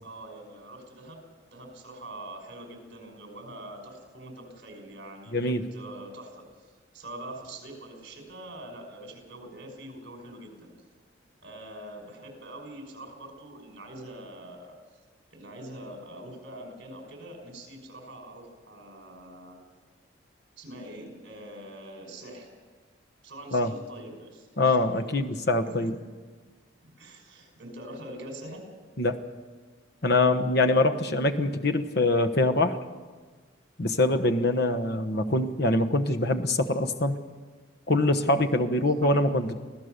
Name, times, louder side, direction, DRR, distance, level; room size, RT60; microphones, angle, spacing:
voice 1, 0.0-1.2 1.5-6.4 6.9-10.7 11.4-14.7 15.3-19.6 20.6-22.5 23.2-25.4 25.7-25.9 26.8-28.6, right 1 dB, 60° right, 2 dB, 5.6 m, -44 dB
voice 2, 5.3-5.6 23.5-23.7 24.6-25.9 29.0-29.2 30.0-32.8 33.8-37.2 37.9-39.5, left 2 dB, 55° left, 6 dB, 1.2 m, -24 dB
25.0 x 16.0 x 6.7 m, 1.4 s
head